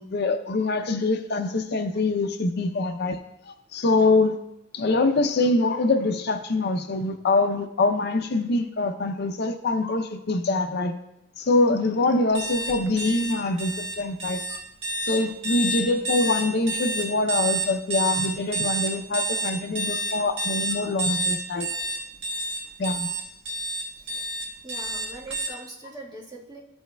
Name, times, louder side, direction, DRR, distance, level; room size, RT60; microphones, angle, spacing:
voice 1, 0.0-3.2 3.5-4.4 4.7-10.9 11.4-14.6 15.0-21.7 22.8-23.2, left 2 dB, 60° left, 7 dB, 0.5 m, -24 dB
sound 1, 12.3-25.5, right 2 dB, 85° right, 1.2 m, -29 dB
voice 2, 24.0-24.3 24.6-26.6, right 1 dB, 20° right, -3 dB, 1.4 m, -42 dB
13.5 x 5.5 x 2.2 m, 0.89 s
head